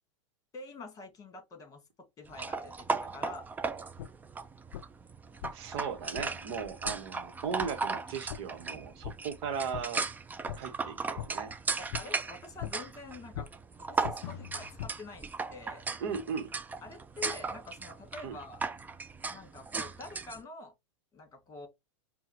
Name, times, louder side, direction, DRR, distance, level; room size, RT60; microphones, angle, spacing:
voice 1, 0.5-1.8 2.2-3.5 11.8-15.8 16.8-18.6 19.3-20.7 21.1-21.7, left 3 dB, 25° left, 1.8 m, -47 dB
sound 1, 2.3-20.4, right 4 dB, 10° right, 0.4 m, -37 dB
sound 2, 4.0-4.1 4.7-4.8 5.4-5.5 6.2-6.3 6.8-7.0 7.6-7.7 8.3-8.4 9.0-9.2 9.7-9.8 10.5-10.6 11.2-11.3 11.9-12.0 12.6-12.7 13.3-13.5 14.0-14.9, left 10 dB, 65° left, 0.4 m, -39 dB
voice 2, 5.5-10.1 10.5-11.5 16.0-16.5 18.2-18.4, right 6 dB, 60° right, 1.0 m, -37 dB
5.6 x 2.2 x 2.7 m
hypercardioid pair, 115°, 16 cm